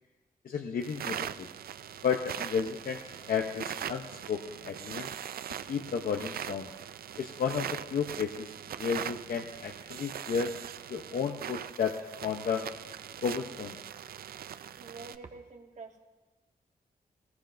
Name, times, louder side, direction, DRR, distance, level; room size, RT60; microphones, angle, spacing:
voice 1, 0.4-1.5 2.0-3.0 3.3-5.1 5.7-6.7 7.2-8.5 8.8-10.5 10.9-12.7 13.2-13.8, left 6 dB, 70° left, 3 dB, 0.8 m, -32 dB
sound 1, 0.8-15.2, right 9 dB, 80° right, 0.4 m, -41 dB
voice 2, 14.8-16.0, right 4 dB, 50° right, 3 dB, 1.3 m, -47 dB
19.0 x 17.5 x 2.6 m, 1.2 s
wide cardioid pair, 170°, 15 cm